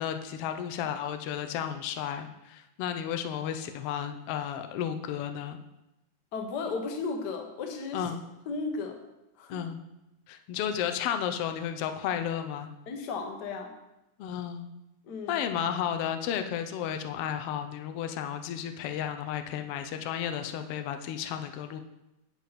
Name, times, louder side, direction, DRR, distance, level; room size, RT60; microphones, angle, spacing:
voice 1, 0.0-5.6 7.9-8.2 9.5-9.8 10.3-12.7 14.2-14.6 15.3-21.8, left 9 dB, 85° left, 7 dB, 1.3 m, -33 dB
voice 2, 6.3-8.0 8.5-9.0 9.4-9.6 12.9-13.7 15.0-15.4, left 4 dB, 55° left, 3 dB, 1.1 m, -34 dB
9.2 x 8.2 x 4.2 m, 0.92 s
omnidirectional pair, 3.5 m